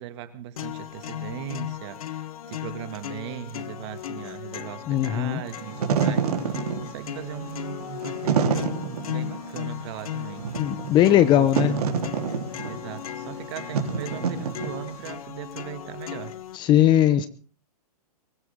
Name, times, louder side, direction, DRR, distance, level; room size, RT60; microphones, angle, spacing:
voice 1, 0.0-10.7 11.0-11.9 12.6-16.4, right 11 dB, 45° right, 10 dB, 2.3 m, -38 dB
sound 1, 0.6-16.6, left 11 dB, 60° left, 1.4 m, -37 dB
voice 2, 4.9-5.4 10.6-11.8 16.5-17.3, left 12 dB, 25° left, 15 dB, 0.9 m, -19 dB
Wind / Fire, 5.6-15.1, right 6 dB, 70° right, 3.7 m, -28 dB
23.0 x 15.5 x 3.8 m, 0.37 s
hypercardioid pair, 140°, 20 cm